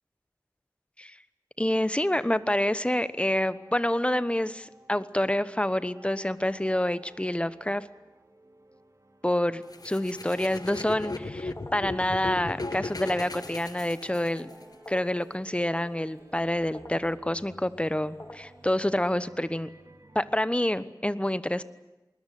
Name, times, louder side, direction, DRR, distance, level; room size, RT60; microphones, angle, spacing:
voice 1, 1.6-7.9 9.2-14.5 14.9-19.7 20.1-21.6, left 1 dB, 15° left, 15 dB, 1.1 m, -27 dB
sound 1, 2.2-20.4, right 1 dB, 50° right, 2.9 m, -56 dB
sound 2, 9.7-14.6, left 2 dB, 65° left, 1.3 m, -36 dB
sound 3, 10.9-19.2, left 1 dB, 35° left, 3.3 m, -51 dB
20.5 x 20.5 x 9.3 m, 1.1 s
wide cardioid pair, 45°, 7 cm